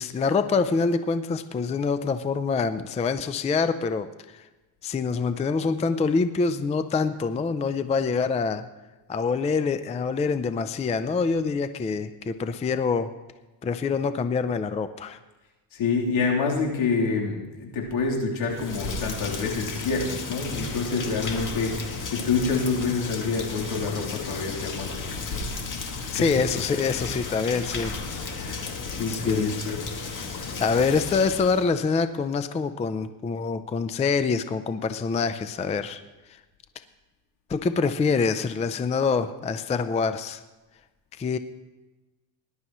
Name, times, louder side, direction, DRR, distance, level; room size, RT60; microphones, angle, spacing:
voice 1, 0.0-4.1 4.3-4.4 4.8-8.6 9.1-13.1 13.6-15.2 26.1-28.0 28.3-28.4 29.1-29.5 30.6-36.0 37.5-40.4 41.2-41.4, left 4 dB, 15° left, 11 dB, 0.4 m, -25 dB
voice 2, 15.7-25.1 26.1-26.2 28.3-29.8, left 4 dB, 75° left, -2 dB, 3.4 m, -27 dB
Rain, 18.5-31.7, left 4 dB, 40° left, 2.1 m, -34 dB
20.0 x 11.0 x 3.0 m, 1.1 s
cardioid pair, 120°, 46 cm